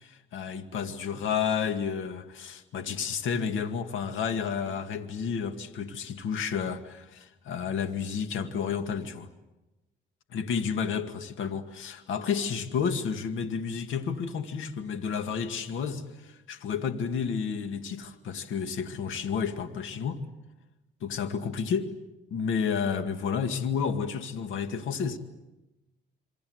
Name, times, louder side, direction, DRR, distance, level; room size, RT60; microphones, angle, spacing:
voice 1, 0.0-9.3 10.3-20.2 21.0-21.9 22.3-25.2, left 6 dB, 80° left, 2.1 m, -31 dB
28.0 x 24.5 x 8.0 m
cardioid pair, 90°, 20 cm